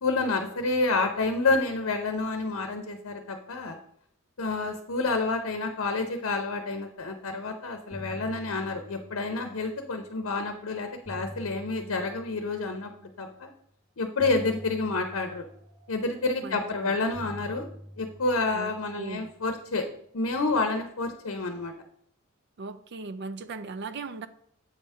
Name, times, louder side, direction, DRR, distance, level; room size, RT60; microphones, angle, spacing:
voice 1, 0.0-3.8 4.4-12.9 13.2-13.5 14.0-15.5 15.9-17.7 18.0-19.9 20.1-21.7, left 3 dB, 85° left, 5 dB, 0.7 m, -29 dB
sound 1, 7.4-7.5 7.7-10.1 10.7-13.2 14.2-16.6 17.1-19.7, equal, 20° right, 0.9 m, -46 dB
voice 2, 16.4-17.0 18.5-19.3 22.6-24.3, right 3 dB, 55° right, 13 dB, 0.5 m, -38 dB
7.9 x 3.6 x 5.4 m, 0.67 s
head